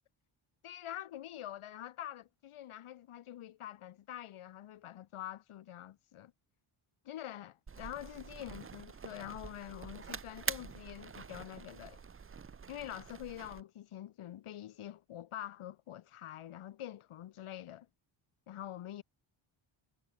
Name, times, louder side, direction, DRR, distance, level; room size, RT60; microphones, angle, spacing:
voice 1, 0.6-6.3 7.0-12.0 12.7-17.9 18.5-19.0, left 12 dB, 80° left, 3.9 m, -46 dB
sound 1, 7.7-13.6, right 6 dB, 25° right, 1.4 m, -45 dB
wide cardioid pair, 175°, 49 cm